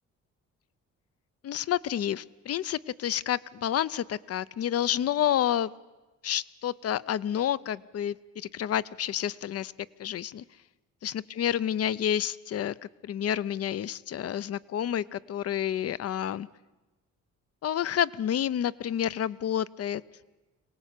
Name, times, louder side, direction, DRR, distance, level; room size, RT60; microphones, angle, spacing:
voice 1, 1.4-5.7 6.2-9.7 10.0-10.4 11.0-12.7 13.0-16.5 17.6-20.0, left 10 dB, 55° left, 18 dB, 0.6 m, -29 dB
24.0 x 18.0 x 8.3 m, 1.2 s
cardioid pair, 90°, 30 cm